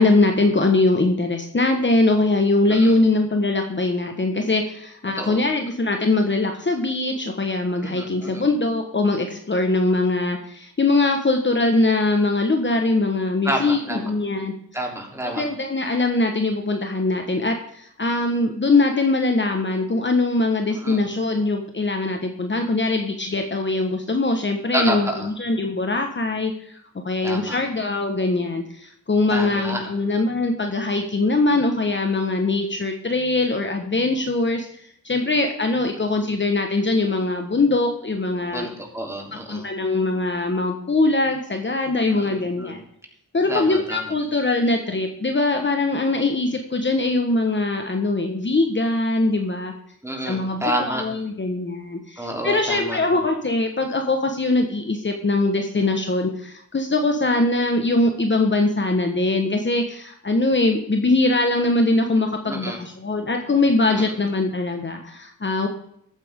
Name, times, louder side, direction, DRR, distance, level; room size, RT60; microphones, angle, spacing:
voice 1, 0.0-14.5 15.2-26.5 27.0-34.7 35.0-38.7 39.3-42.8 43.3-49.7 50.2-65.7, left 2 dB, 40° left, 4 dB, 1.5 m, -22 dB
voice 2, 7.8-8.4 13.4-14.1 14.7-15.4 20.8-21.1 24.7-25.3 27.2-27.6 29.3-29.8 38.5-39.7 42.1-42.8 43.5-44.0 50.0-51.0 52.2-53.0 62.5-62.8 64.0-64.1, right 1 dB, 10° right, 0 dB, 3.5 m, -29 dB
14.5 x 8.9 x 3.7 m, 0.69 s
cardioid pair, 65°, 30 cm